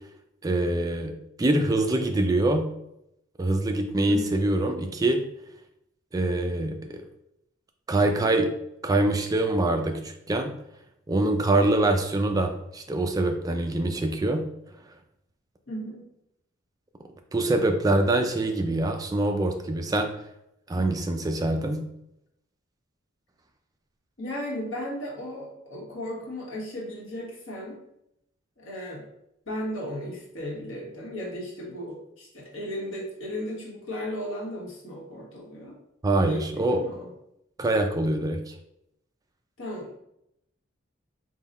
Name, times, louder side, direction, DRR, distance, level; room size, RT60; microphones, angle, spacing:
voice 1, 0.4-1.1 1.4-2.7 3.4-5.2 6.1-7.0 7.9-8.5 8.8-10.5 11.1-14.5 17.3-20.1 20.7-21.8 36.0-36.8 37.6-38.5, right 2 dB, 20° right, 5 dB, 0.3 m, -24 dB
voice 2, 4.1-4.4 15.7-16.0 24.2-27.8 28.6-29.0 29.5-35.8 36.2-37.1 39.6-40.0, equal, 80° left, -3 dB, 1.3 m, -35 dB
3.8 x 2.3 x 4.0 m, 0.80 s
head